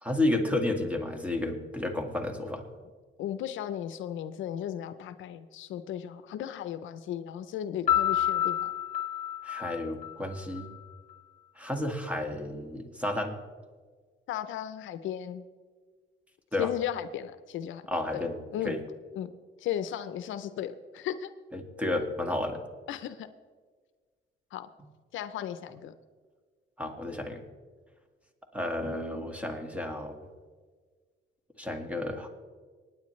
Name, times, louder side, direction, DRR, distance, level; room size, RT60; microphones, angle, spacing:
voice 1, 0.0-2.6 9.4-10.7 11.6-13.4 16.5-16.7 17.9-18.3 18.7-18.8 21.5-22.6 26.8-27.4 28.5-30.1 31.6-32.3, left 1 dB, 5° right, 4 dB, 1.8 m, -31 dB
voice 2, 3.2-8.7 14.3-15.4 16.6-17.9 18.1-18.3 18.5-18.8 19.2-19.3 19.6-21.3 22.9-23.3 24.5-24.7 25.1-25.9, left 10 dB, 80° left, 12 dB, 0.6 m, -35 dB
Piano, 7.9-10.7, left 11 dB, 40° left, 1.3 m, -29 dB
25.5 x 9.4 x 3.2 m, 1.5 s
cardioid pair, 90°, 20 cm